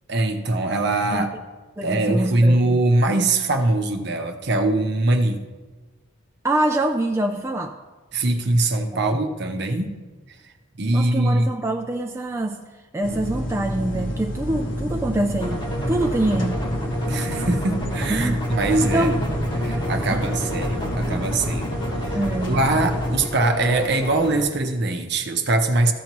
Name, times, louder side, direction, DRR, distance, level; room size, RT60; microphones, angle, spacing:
voice 1, 0.1-1.3 1.8-5.5 8.1-9.9 10.8-11.5 17.1-19.1 19.6-21.7 22.1-22.2 22.5-25.9, right 2 dB, 50° right, 5 dB, 0.8 m, -22 dB
voice 2, 1.8-2.8 6.4-7.8 8.9-9.2 10.9-12.6 12.9-15.6 15.9-16.6 18.1-18.4 18.8-19.2 20.1-20.2 22.1-22.6, right 1 dB, 10° right, 3 dB, 0.3 m, -25 dB
sound 1, 13.0-23.2, equal, 65° left, 1.6 m, -29 dB
sound 2, 15.4-24.4, equal, 25° left, 1.7 m, -30 dB
14.0 x 7.1 x 3.0 m, 1.3 s
head